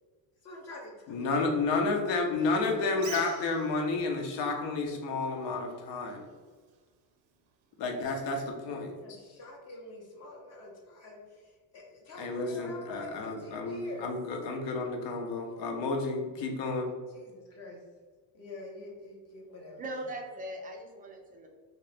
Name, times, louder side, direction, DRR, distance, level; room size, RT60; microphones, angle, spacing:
voice 1, 0.4-1.5 2.5-3.3 8.9-14.1 17.1-17.8 18.3-19.8, left 2 dB, 35° left, -1 dB, 0.7 m, -45 dB
voice 2, 1.1-6.3 7.8-8.9 12.2-16.9, left 3 dB, 70° left, 3 dB, 0.8 m, -31 dB
Bird, 2.9-9.6, right 8 dB, 85° right, 0.7 m, -52 dB
voice 3, 19.8-21.5, right 1 dB, 20° right, 2 dB, 0.4 m, -40 dB
2.9 x 2.8 x 3.3 m, 1.5 s
cardioid pair, 135°, 46 cm